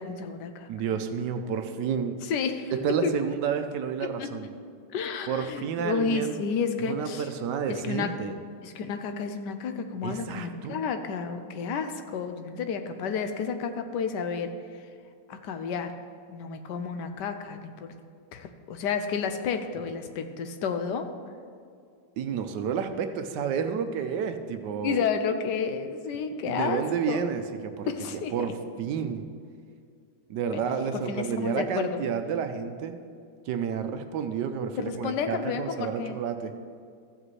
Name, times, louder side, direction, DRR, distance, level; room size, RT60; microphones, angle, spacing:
voice 1, 0.0-0.7 2.2-2.7 3.0-3.1 4.2-4.5 4.9-7.3 7.7-8.1 8.6-14.8 15.3-15.9 16.3-18.0 18.3-21.1 24.8-27.2 27.9-28.5 30.5-30.7 30.9-32.0 34.8-36.2, left 6 dB, 75° left, 8 dB, 1.3 m, -31 dB
voice 2, 0.7-2.2 2.8-4.5 5.3-6.4 6.9-8.3 10.0-10.8 22.2-25.0 26.4-27.9 28.3-28.5 28.8-29.3 30.3-33.0 33.5-36.5, right 7 dB, 75° right, 8 dB, 1.2 m, -30 dB
14.0 x 7.4 x 3.2 m, 2.3 s
omnidirectional pair, 1.9 m